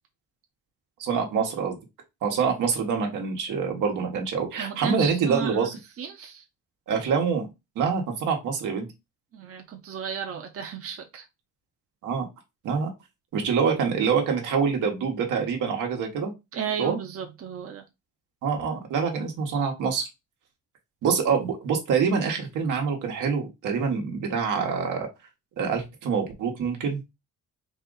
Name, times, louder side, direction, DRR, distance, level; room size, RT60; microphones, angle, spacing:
voice 1, 1.0-1.8 2.2-5.8 6.9-7.5 7.7-8.9 12.0-12.3 12.6-12.9 13.3-16.3 16.8-17.0 18.4-20.1 21.0-25.1 25.6-27.0, right 6 dB, 85° right, 1.4 m, -25 dB
voice 2, 4.6-5.7 6.0-6.4 9.3-11.2 16.5-17.8, right 6 dB, 50° right, 0.8 m, -34 dB
4.2 x 2.5 x 3.9 m
cardioid pair, 90°, 30 cm